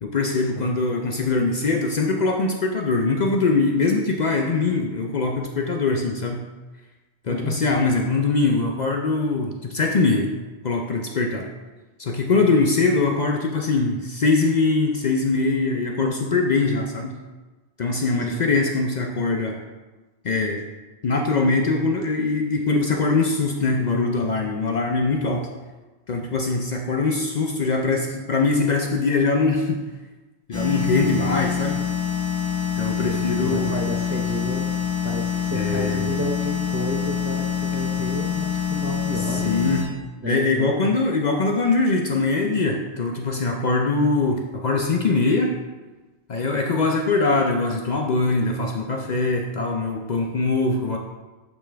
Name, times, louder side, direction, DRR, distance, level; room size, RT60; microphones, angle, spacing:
voice 1, 0.0-6.4 7.2-10.3 10.6-11.5 12.0-17.1 17.8-19.6 20.2-20.6 21.0-25.5 26.1-29.8 30.5-31.8 32.8-33.7 35.5-36.1 39.2-39.9 40.3-45.6 46.3-51.0, left 3 dB, 50° left, 2 dB, 0.6 m, -22 dB
sound 1, 30.5-39.8, left 8 dB, 15° left, 1.2 m, -26 dB
voice 2, 33.0-34.7 35.0-39.6 39.9-40.9, equal, 20° right, 0 dB, 0.4 m, -32 dB
7.1 x 5.3 x 3.3 m, 1.2 s
omnidirectional pair, 1.1 m